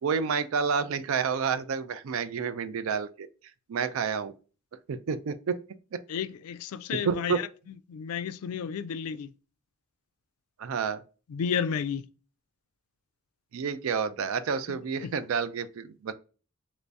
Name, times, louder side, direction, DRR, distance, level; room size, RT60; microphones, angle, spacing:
voice 1, 0.0-3.3 3.7-4.3 4.9-5.6 5.9-6.0 6.9-7.4 10.6-11.0 13.5-16.1, right 6 dB, 70° right, 0.4 m, -29 dB
voice 2, 6.1-7.3 7.9-9.3 11.3-12.0 15.0-15.1, left 7 dB, 85° left, 0.3 m, -31 dB
3.0 x 2.6 x 3.3 m
head